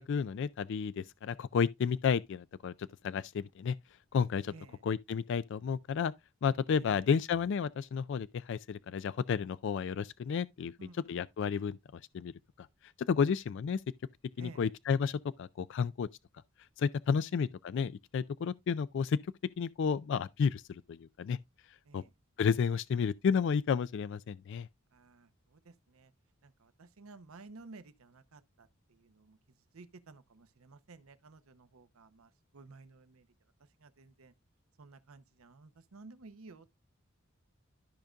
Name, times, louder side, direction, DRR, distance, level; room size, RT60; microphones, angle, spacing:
voice 1, 0.0-3.8 4.1-4.5 4.8-6.1 6.4-10.7 11.1-12.3 12.6-12.7 13.1-13.8 14.4-16.1 16.8-19.2 19.6-21.4 21.9-22.0 22.4-24.7, left 6 dB, 60° left, 0.3 m, -32 dB
voice 2, 4.5-4.8 6.8-7.1 10.8-11.1 14.4-14.7 21.8-22.1 24.9-26.1 26.4-29.4 29.7-33.3 33.8-34.3 34.8-36.7, right 3 dB, 90° right, 0.8 m, -54 dB
13.5 x 5.1 x 2.3 m
head